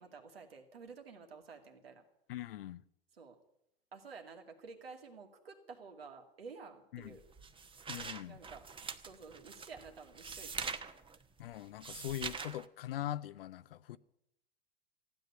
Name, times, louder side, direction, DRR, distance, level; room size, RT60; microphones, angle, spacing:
voice 1, 0.0-2.0 3.1-3.4 3.9-7.2 8.2-8.6 9.1-10.7, right 5 dB, 85° right, 2.5 m, -51 dB
voice 2, 2.3-2.8 6.9-7.2 7.9-8.4 11.4-14.0, left 12 dB, 70° left, 0.7 m, -41 dB
sound 1, 7.0-12.7, right 5 dB, 15° right, 1.0 m, -44 dB
15.5 x 9.3 x 9.6 m
hypercardioid pair, 90°, 29 cm